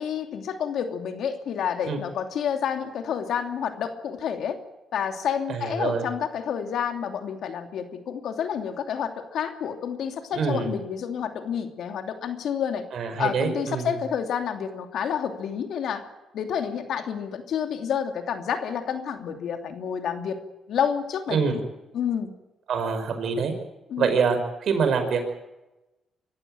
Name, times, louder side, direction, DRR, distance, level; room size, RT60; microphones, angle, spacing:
voice 1, 0.0-4.6 4.9-12.8 13.2-16.0 16.3-20.4 20.7-21.6 21.9-22.3 23.9-24.1, left 8 dB, 70° left, 5 dB, 2.7 m, -29 dB
voice 2, 5.5-6.1 10.3-10.7 12.9-13.9 21.3-21.6 22.7-23.5 24.0-25.3, right 5 dB, 65° right, 6 dB, 5.5 m, -25 dB
24.5 x 14.5 x 9.0 m, 1.0 s
cardioid pair, 90°, 0 cm